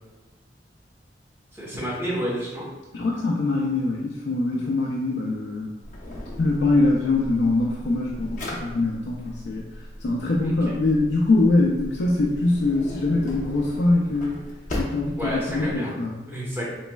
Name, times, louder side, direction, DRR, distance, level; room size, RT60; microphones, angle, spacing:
voice 1, 1.5-2.6 10.4-10.7 15.2-15.9 16.3-16.7, equal, 10° right, -6 dB, 0.9 m, -30 dB
voice 2, 2.9-5.7 6.4-14.4 14.7-16.1, left 2 dB, 75° left, -2 dB, 0.4 m, -23 dB
Drawer open or close, 5.8-15.8, left 1 dB, 45° left, 0.7 m, -37 dB
4.0 x 3.0 x 2.3 m, 1.2 s
head